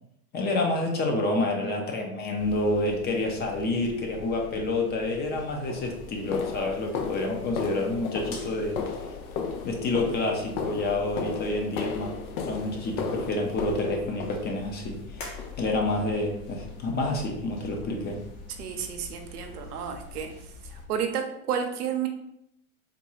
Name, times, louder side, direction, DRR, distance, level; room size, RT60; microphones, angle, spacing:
voice 1, 0.3-8.8 9.6-12.1 12.4-15.2 15.6-18.2, left 2 dB, 20° left, 2 dB, 0.5 m, -28 dB
sound 1, 2.4-20.8, left 4 dB, 50° left, 1.0 m, -45 dB
sound 2, 5.0-5.1 5.7-14.9 15.4-15.7 16.0-16.2 16.6-16.8 17.2-17.3 17.8-17.9, left 5 dB, 70° left, 0.6 m, -35 dB
voice 2, 18.6-20.3 20.7-22.1, right 8 dB, 80° right, 5 dB, 0.7 m, -31 dB
3.6 x 2.2 x 3.0 m, 0.78 s
hypercardioid pair, 105°, 45 cm